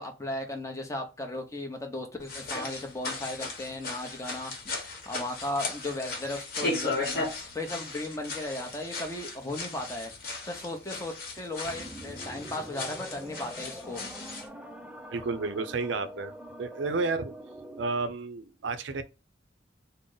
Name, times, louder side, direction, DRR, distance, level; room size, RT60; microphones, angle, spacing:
voice 1, 0.0-4.5 4.8-10.1 10.4-14.1, left 1 dB, 15° left, 0.7 m, -36 dB
sound 1, 2.2-14.5, left 3 dB, 55° left, 1.1 m, -37 dB
sound 2, 11.6-18.1, right 1 dB, 5° right, 0.3 m, -44 dB
voice 2, 15.1-17.3 17.8-19.0, right 3 dB, 90° right, 0.5 m, -31 dB
3.8 x 2.0 x 3.7 m
head